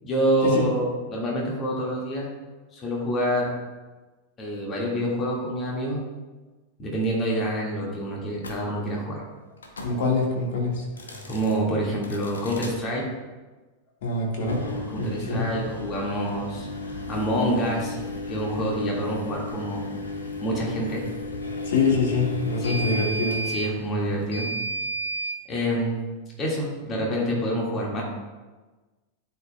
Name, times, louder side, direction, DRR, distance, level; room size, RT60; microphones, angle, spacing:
voice 1, 0.0-2.3 2.7-3.5 4.4-6.0 6.8-9.2 11.1-13.1 14.6-18.0 18.3-19.8 20.4-21.0 22.6-22.8 23.5-24.5 25.5-26.0 26.4-28.0, right 1 dB, 25° left, -2 dB, 1.8 m, -27 dB
sound 1, 8.4-8.6 9.6-10.0 10.9-11.6 12.0-12.8 14.3-25.4, left 1 dB, 70° left, 0.9 m, -33 dB
voice 2, 9.8-10.8 14.0-15.5 21.6-23.4, left 3 dB, 55° left, -1 dB, 1.6 m, -25 dB
11.0 x 4.7 x 2.2 m, 1.2 s
figure-of-eight pair, 90°, 0 cm